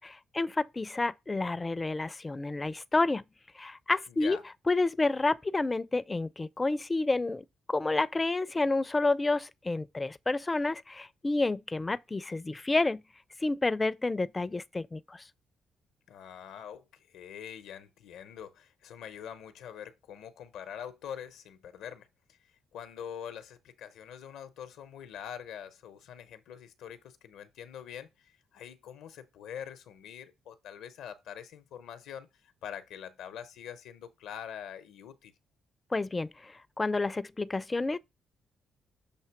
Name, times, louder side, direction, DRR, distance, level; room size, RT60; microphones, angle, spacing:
voice 1, 0.0-3.2 3.6-4.4 4.7-13.0 13.4-15.2 35.9-38.0, left 3 dB, 25° left, 0.4 m, -30 dB
voice 2, 4.1-4.4 16.1-22.4 22.7-35.3, left 9 dB, 80° left, 0.7 m, -44 dB
6.8 x 2.8 x 5.8 m
supercardioid pair, 60°, 0 cm